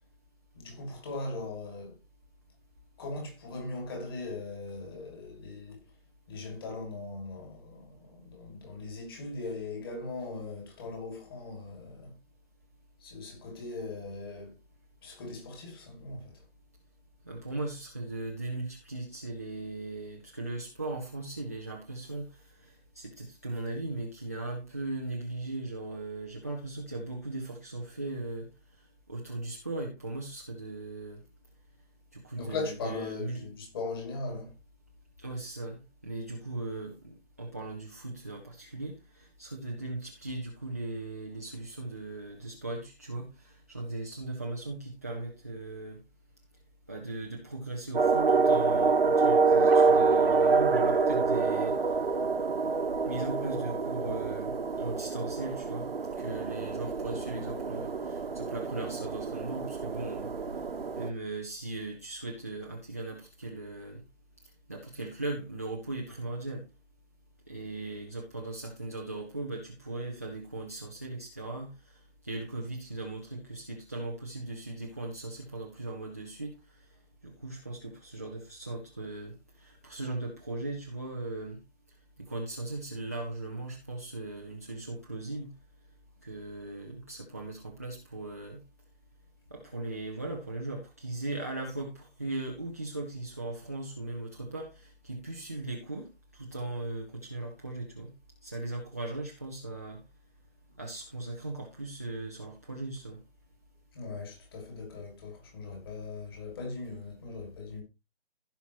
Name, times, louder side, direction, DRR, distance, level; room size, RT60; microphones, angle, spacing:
voice 1, 0.5-2.0 3.0-5.8 6.3-12.2 13.0-14.6 15.0-16.4 32.3-34.5 103.9-107.8, left 3 dB, 20° left, 2.7 m, -39 dB
voice 2, 17.3-28.5 29.1-31.2 32.1-33.4 35.2-46.0 46.9-51.8 53.0-55.9 56.2-60.3 61.0-64.0 64.7-66.7 67.5-76.6 77.2-81.6 82.2-85.5 86.2-88.6 89.5-98.1 98.4-100.0 100.8-103.2, right 2 dB, 15° right, 0.7 m, -38 dB
sound 1, 47.9-61.1, right 4 dB, 60° right, 1.3 m, -27 dB
16.0 x 5.7 x 3.0 m
figure-of-eight pair, 170°, 33 cm